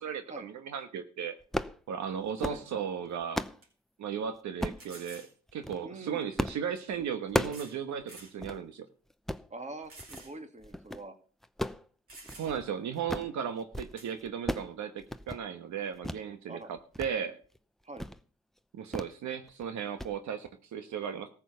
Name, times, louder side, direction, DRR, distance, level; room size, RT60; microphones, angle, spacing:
voice 1, 0.0-1.3 1.9-3.4 4.0-5.3 5.5-8.9 12.3-17.4 18.7-21.3, right 7 dB, 70° right, 8 dB, 1.3 m, -36 dB
sound 1, 1.4-1.8 2.2-2.6 3.1-3.6 4.6-4.9 5.5-5.8 6.4-6.6 6.9-7.7 8.0-8.1 8.4-8.6 9.1-9.5 10.0-10.3 10.6-11.1 11.4-12.7 12.9-13.4 13.6-13.9 14.2-14.7 15.0-15.4 16.0-16.2 16.6-17.1 17.4-17.6 18.0-18.2 18.9-19.2 19.5-19.7 20.0-20.1, equal, ahead, 0.7 m, -35 dB
sound 2, 3.0-3.1 3.6-3.7 4.8-5.3 6.5-6.6 7.4-7.8 8.1-8.4 8.9-9.0 9.9-10.3 10.7-10.8 11.7-11.8 12.1-12.7 14.0-14.1, right 2 dB, 45° right, 4.7 m, -50 dB
voice 2, 5.8-6.2 9.5-11.2 16.5-16.7 17.8-18.1, right 2 dB, 25° right, 7 dB, 2.0 m, -44 dB
14.0 x 7.4 x 6.9 m, 0.42 s
cardioid pair, 90°, 30 cm